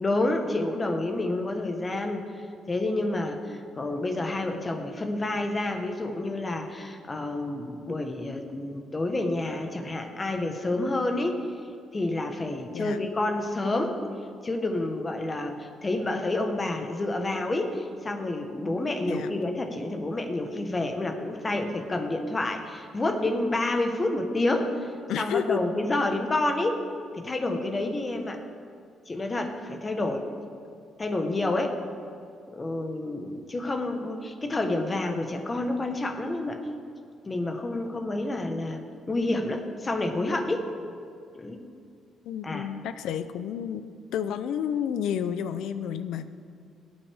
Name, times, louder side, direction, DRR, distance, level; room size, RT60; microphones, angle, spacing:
voice 1, 0.0-2.3 2.7-11.4 11.9-14.0 14.4-24.9 25.2-26.8 27.1-28.4 29.1-30.3 31.0-31.8 32.5-36.6 37.2-38.8 39.1-40.6 41.3-41.6 42.4-42.7, left 2 dB, 25° left, 5 dB, 1.3 m, -29 dB
voice 2, 25.1-25.6 42.2-43.8 44.1-46.3, left 8 dB, 85° left, 12 dB, 0.6 m, -30 dB
18.5 x 8.9 x 3.6 m, 2.4 s
cardioid pair, 90°, 0 cm